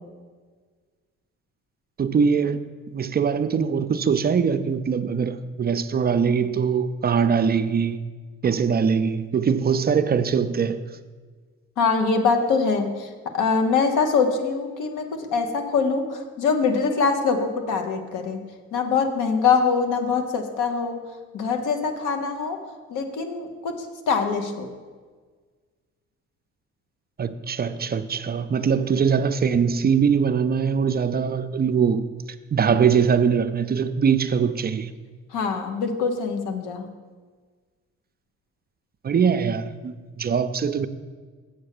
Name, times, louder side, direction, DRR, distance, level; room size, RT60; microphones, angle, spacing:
voice 1, 2.0-2.6 2.9-8.0 8.4-10.8 27.2-32.1 32.5-34.9 39.0-40.9, right 6 dB, 35° right, 0.4 m, -22 dB
voice 2, 11.8-13.1 13.3-18.4 18.7-21.0 21.3-22.6 22.9-24.7 35.3-36.9, left 5 dB, 90° left, 1.1 m, -23 dB
7.8 x 5.4 x 6.6 m
cardioid pair, 90°, 30 cm